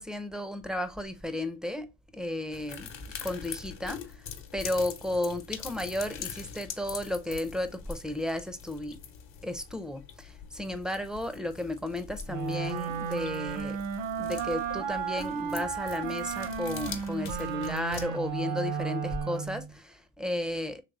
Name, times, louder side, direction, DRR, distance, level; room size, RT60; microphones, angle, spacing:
voice 1, 0.0-1.9 2.1-2.9 3.2-4.2 4.5-9.0 9.4-13.8 14.2-20.8, left 1 dB, ahead, 0.4 m, -33 dB
sound 1, 2.5-18.0, left 8 dB, 60° left, 0.9 m, -44 dB
Wind instrument woodwind instrument, 12.3-19.7, right 7 dB, 70° right, 0.8 m, -33 dB
3.3 x 3.1 x 2.5 m
supercardioid pair, 65°, 48 cm